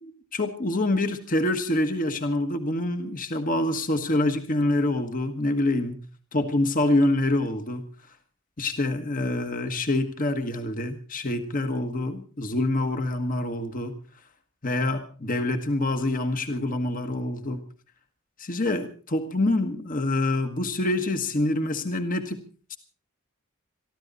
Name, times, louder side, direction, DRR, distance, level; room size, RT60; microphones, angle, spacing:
voice 1, 0.0-6.0 6.3-7.8 8.6-13.9 14.6-17.6 18.4-22.4 22.7-22.8, left 2 dB, 40° left, 7 dB, 1.5 m, -26 dB
24.0 x 13.5 x 4.1 m, 0.37 s
head